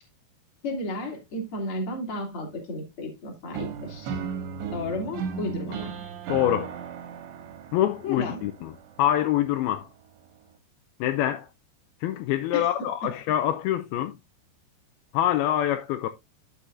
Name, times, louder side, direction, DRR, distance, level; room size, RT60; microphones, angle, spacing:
voice 1, 0.6-4.2 4.7-6.0 8.0-8.4 12.5-12.6, left 2 dB, 35° left, 2.9 m, -33 dB
sound 1, 3.5-9.5, right 6 dB, 80° right, 3.5 m, -36 dB
voice 2, 6.3-6.8 7.7-8.7 9.0-9.9 11.0-11.5 12.0-14.2 15.1-16.1, left 12 dB, 85° left, 2.2 m, -25 dB
12.0 x 6.9 x 2.5 m
omnidirectional pair, 5.0 m